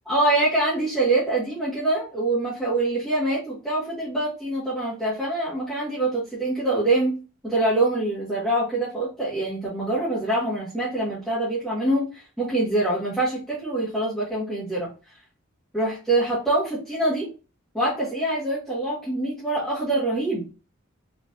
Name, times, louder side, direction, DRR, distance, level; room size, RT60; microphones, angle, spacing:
voice 1, 0.1-7.2 7.4-14.9 15.7-17.3 17.7-20.5, right 2 dB, 5° left, -9 dB, 1.4 m, -25 dB
4.4 x 3.2 x 2.5 m, 0.33 s
head